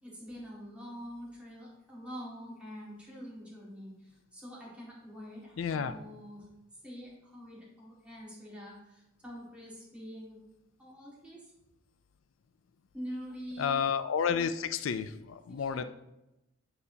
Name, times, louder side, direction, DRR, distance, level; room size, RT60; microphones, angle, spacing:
voice 1, 0.0-6.5 6.8-10.4 10.8-11.5 12.9-13.8 15.0-15.1 15.5-15.8, equal, 5° right, -7 dB, 2.0 m, -45 dB
voice 2, 5.6-5.9 13.6-15.8, left 7 dB, 75° left, 11 dB, 0.4 m, -31 dB
8.7 x 4.1 x 2.8 m, 0.94 s
head